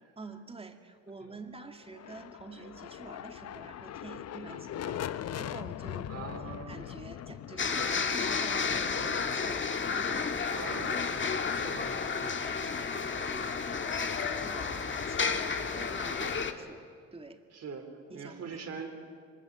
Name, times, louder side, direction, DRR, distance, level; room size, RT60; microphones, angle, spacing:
voice 1, 0.2-6.1 6.4-11.5 11.9-16.8 17.1-17.4 18.1-18.6, right 3 dB, 20° right, 6 dB, 2.1 m, -48 dB
sound 1, 1.8-9.6, left 11 dB, 55° left, 0.7 m, -41 dB
voice 2, 4.5-5.0 6.1-6.8 9.0-9.2 10.5-11.1 11.5-11.9 13.1-13.3 16.2-16.5 17.5-17.9 18.1-19.0, right 5 dB, 55° right, 5 dB, 3.9 m, -43 dB
sound 2, 7.6-16.5, left 5 dB, 40° left, 1.7 m, -31 dB
23.0 x 20.5 x 8.8 m, 2.2 s
cardioid pair, 90°, 30 cm